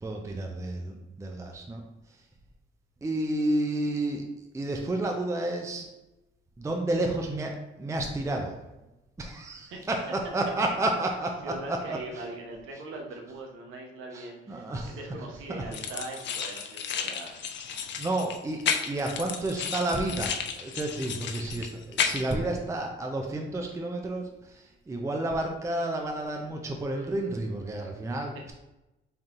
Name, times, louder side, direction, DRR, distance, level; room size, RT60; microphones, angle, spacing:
voice 1, 0.0-1.8 3.0-4.2 4.5-5.9 6.6-8.6 9.2-11.8 14.1-15.0 15.5-15.6 17.8-28.5, right 1 dB, 15° right, 2 dB, 0.4 m, -31 dB
voice 2, 11.4-17.4, right 2 dB, 90° right, 1 dB, 0.9 m, -41 dB
sound 1, 15.7-22.3, left 7 dB, 65° left, 0.5 m, -33 dB
3.7 x 2.8 x 3.7 m, 0.99 s
cardioid pair, 90°, 20 cm